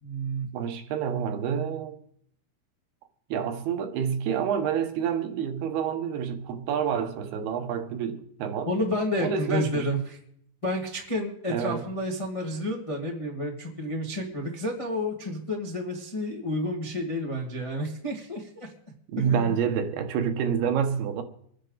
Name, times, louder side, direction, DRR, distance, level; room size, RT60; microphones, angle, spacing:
voice 1, 0.0-0.5 8.7-10.2 10.6-18.7 19.2-19.5, equal, 40° left, 0.4 m, -30 dB
voice 2, 0.5-2.0 3.3-8.7 9.2-9.9 11.5-11.8 19.1-21.2, right 7 dB, 80° right, 3.1 m, -28 dB
24.5 x 10.5 x 4.0 m
omnidirectional pair, 4.4 m